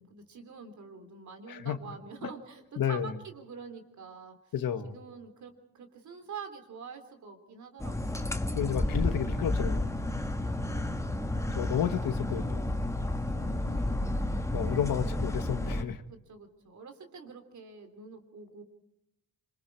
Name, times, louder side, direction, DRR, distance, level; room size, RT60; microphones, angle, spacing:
voice 1, 0.0-4.5 4.8-8.2 10.0-11.0 13.3-14.1 16.1-18.6, right 5 dB, 55° right, 6 dB, 3.6 m, -46 dB
voice 2, 2.8-3.1 4.5-5.0 8.6-10.0 11.5-12.7 14.5-16.0, left 9 dB, 75° left, 8 dB, 1.8 m, -31 dB
sound 1, 7.8-15.8, left 1 dB, 10° left, 1.6 m, -31 dB
26.0 x 25.0 x 4.8 m, 0.86 s
cardioid pair, 110°, 35 cm